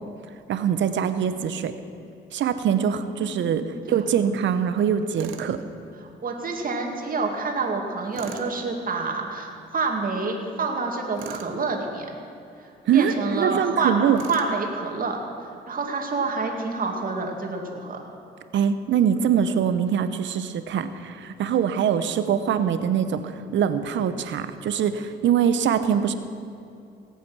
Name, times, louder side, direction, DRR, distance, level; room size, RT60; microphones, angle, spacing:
voice 1, 0.5-1.7 2.3-5.6 12.9-14.2 18.5-26.1, right 8 dB, 70° right, 11 dB, 0.8 m, -23 dB
voice 2, 2.7-3.7 6.0-12.1 12.9-14.0 14.3-15.2 15.7-18.0, right 4 dB, 45° right, 2 dB, 2.3 m, -28 dB
Tools, 5.2-5.5 8.1-8.5 11.2-11.5 14.1-14.6, right 9 dB, 90° right, 1.0 m, -39 dB
18.0 x 8.4 x 6.2 m, 2.6 s
cardioid pair, 90°, 20 cm